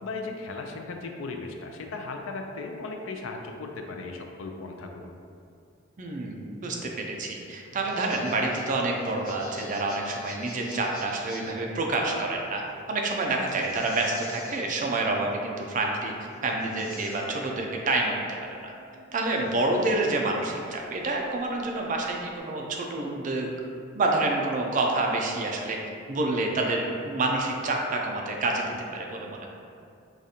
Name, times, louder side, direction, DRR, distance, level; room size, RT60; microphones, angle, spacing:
voice 1, 0.0-5.1, left 3 dB, 70° left, 3 dB, 0.4 m, -37 dB
voice 2, 6.0-12.6 12.9-16.1 16.4-18.2 18.6-18.7 19.1-23.5 23.9-25.8 26.1-28.7 28.9-29.5, right 2 dB, 40° right, 0 dB, 0.4 m, -28 dB
sound 1, 7.6-22.4, left 2 dB, 40° left, 1.3 m, -48 dB
4.9 x 2.4 x 2.7 m, 2.4 s
head